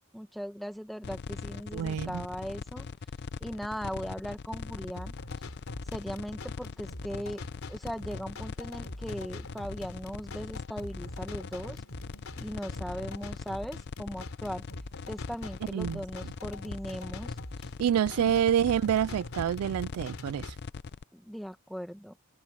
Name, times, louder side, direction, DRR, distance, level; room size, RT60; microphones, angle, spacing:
voice 1, 0.1-2.9 3.4-5.1 5.9-7.4 7.7-11.8 12.4-14.6 15.1-17.4 18.2-18.3 21.1-22.2, equal, ahead, 1.4 m, -38 dB
sound 1, 1.0-21.0, left 4 dB, 50° left, 0.5 m, -41 dB
voice 2, 1.7-2.2 15.7-16.0 17.8-20.5, right 9 dB, 90° right, 0.3 m, -27 dB
sound 2, 4.9-20.6, left 2 dB, 70° left, 3.6 m, -45 dB
sound 3, 9.8-11.4 12.8-14.5 16.1-17.6, equal, 45° right, 6.5 m, -61 dB
open air
head